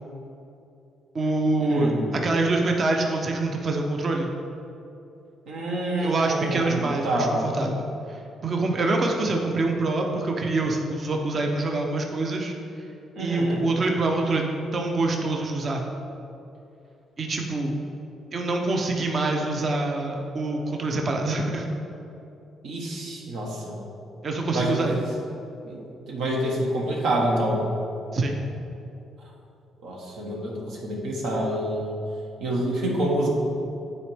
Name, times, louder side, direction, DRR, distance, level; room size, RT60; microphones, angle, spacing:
voice 1, 1.1-4.3 6.0-12.5 13.2-14.4 14.7-15.9 17.2-17.7 18.3-21.7 24.2-25.0 28.1-28.4, right 2 dB, 45° right, 1 dB, 0.7 m, -25 dB
voice 2, 1.7-2.1 5.5-7.4 13.1-13.6 22.6-23.8 24.5-25.0 25.6-25.8 26.1-27.7 29.8-32.0 32.4-33.3, right 1 dB, 85° right, -3 dB, 1.4 m, -27 dB
9.7 x 4.2 x 3.5 m, 2.8 s
cardioid pair, 90°, 0 cm